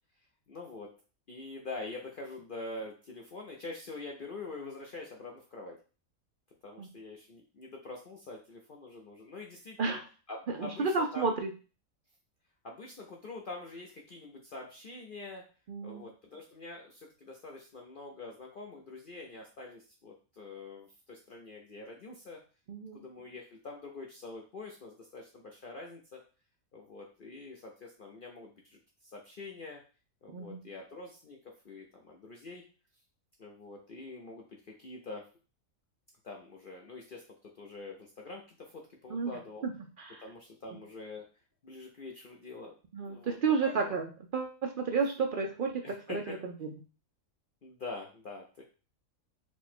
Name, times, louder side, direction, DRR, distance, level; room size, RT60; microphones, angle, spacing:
voice 1, 0.5-0.9 1.3-5.8 6.6-9.9 10.3-11.3 12.6-15.5 15.8-22.4 22.9-26.2 26.7-29.8 30.2-31.4 31.6-32.6 33.4-35.3 36.2-39.6 40.2-41.3 41.6-42.8 43.1-43.9 45.8-46.4 47.6-48.6, left 3 dB, 55° left, 0 dB, 0.6 m, -45 dB
voice 2, 10.5-11.5 15.7-16.0 22.7-23.0 30.3-30.6 39.1-39.3 39.6-39.7 40.1-40.2 42.9-46.5, right 4 dB, 70° right, 3 dB, 0.5 m, -31 dB
4.5 x 2.2 x 4.2 m, 0.35 s
omnidirectional pair, 1.5 m